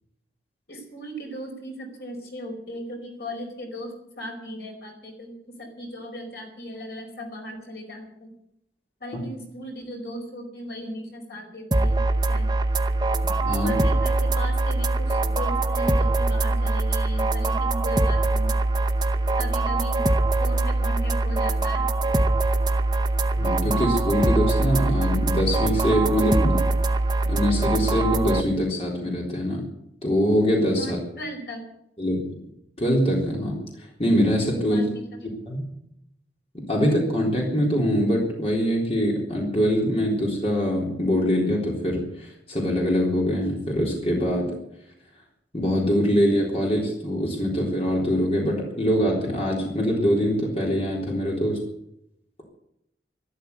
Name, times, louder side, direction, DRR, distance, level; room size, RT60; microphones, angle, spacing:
voice 1, 0.7-8.4 9.0-12.0 12.3-12.6 13.6-18.5 19.4-20.0 20.4-21.9 30.7-31.7 34.7-35.0, equal, 70° left, 1 dB, 4.9 m, -37 dB
sound 1, 11.7-28.4, right 2 dB, 25° right, 0.9 m, -23 dB
voice 2, 13.4-13.8 23.4-26.7 27.3-29.6 30.0-31.0 32.0-32.2 32.8-34.9 35.5-35.7 36.5-44.6 45.5-51.6, equal, 35° left, -2 dB, 3.8 m, -23 dB
13.0 x 12.5 x 8.4 m, 0.78 s
head